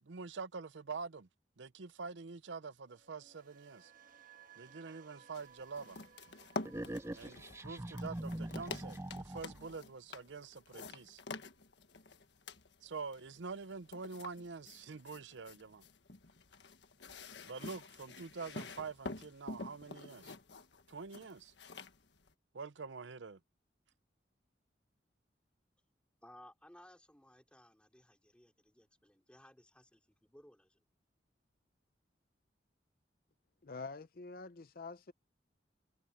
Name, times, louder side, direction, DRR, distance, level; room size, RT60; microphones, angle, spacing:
voice 1, 0.0-1.3 1.6-3.9 4.6-6.0 7.1-11.2 12.8-15.9 17.5-20.4 20.9-21.5 22.5-23.4, right 4 dB, 85° right, 0.7 m, -46 dB
sound 1, 2.8-10.9 11.2-11.6, right 7 dB, 50° right, 1.5 m, -63 dB
sound 2, 5.3-22.3, left 3 dB, 75° left, 1.5 m, -48 dB
sound 3, 6.6-9.7, right 1 dB, 15° right, 0.6 m, -43 dB
voice 2, 26.2-30.8, left 1 dB, 5° left, 3.4 m, -60 dB
voice 3, 33.6-35.1, left 4 dB, 55° left, 0.7 m, -46 dB
head